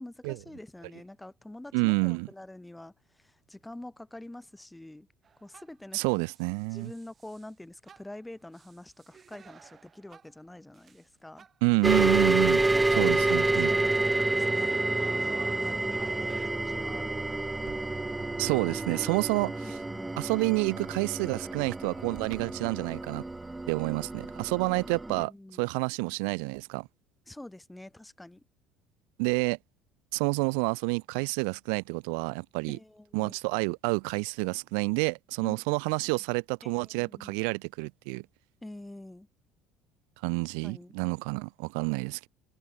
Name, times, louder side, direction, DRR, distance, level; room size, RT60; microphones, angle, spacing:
voice 1, 0.0-5.1 5.4-6.2 6.7-11.5 12.6-17.1 19.6-20.2 24.0-24.5 25.1-25.7 27.3-28.4 32.7-33.4 35.4-35.6 36.6-37.4 38.6-39.3 40.5-40.9, left 1 dB, 10° left, 1.2 m, -46 dB
voice 2, 1.7-2.3 5.9-6.9 11.6-12.6 13.0-13.7 18.4-19.5 20.2-23.2 23.7-25.3 25.6-26.9 29.2-29.6 30.1-32.8 33.1-38.3 40.2-42.3, right 40 dB or more, 75° right, 0.5 m, -29 dB
sound 1, 5.2-5.9 6.3-7.5 7.9-10.4 10.7-11.1 11.4-16.5, right 7 dB, 40° right, 2.1 m, -52 dB
sound 2, 11.8-25.2, right 2 dB, 15° right, 0.5 m, -29 dB
sound 3, 15.0-24.3, right 13 dB, 60° right, 2.4 m, -55 dB
hypercardioid pair, 65°, 0 cm